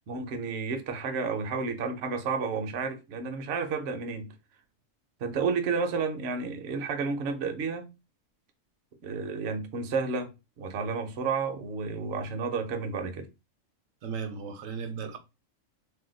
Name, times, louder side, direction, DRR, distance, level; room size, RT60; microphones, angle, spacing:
voice 1, 0.1-4.3 5.2-7.9 9.0-10.3 10.6-13.3, right 4 dB, 60° right, 0.8 m, -31 dB
voice 2, 14.0-15.2, right 6 dB, 80° right, 1.0 m, -36 dB
2.7 x 2.2 x 3.7 m
omnidirectional pair, 1.4 m